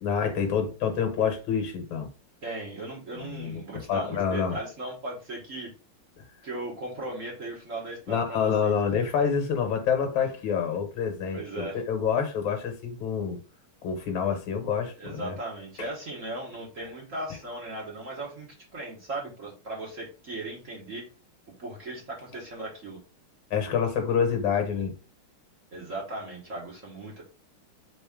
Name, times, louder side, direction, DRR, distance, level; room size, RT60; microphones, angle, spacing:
voice 1, 0.0-2.1 3.2-4.6 6.2-6.3 8.1-13.4 13.8-15.3 15.8-15.9 16.8-16.9 23.5-25.0, left 7 dB, 70° left, 5 dB, 1.7 m, -27 dB
voice 2, 2.4-5.7 6.4-8.9 11.3-11.8 15.0-21.1 21.6-23.0 25.7-27.2, right 2 dB, 45° right, -3 dB, 1.3 m, -37 dB
4.0 x 3.8 x 3.6 m, 0.34 s
omnidirectional pair, 2.4 m